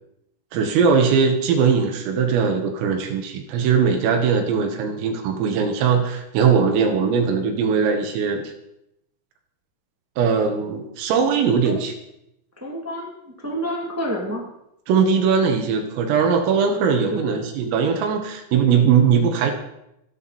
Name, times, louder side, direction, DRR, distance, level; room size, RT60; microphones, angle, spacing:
voice 1, 0.5-8.5 10.2-11.9 14.9-19.5, right 6 dB, 85° right, 4 dB, 4.4 m, -20 dB
voice 2, 12.6-14.4 17.1-17.5, equal, 15° right, -2 dB, 0.5 m, -29 dB
29.0 x 9.9 x 4.3 m, 0.81 s
omnidirectional pair, 5.8 m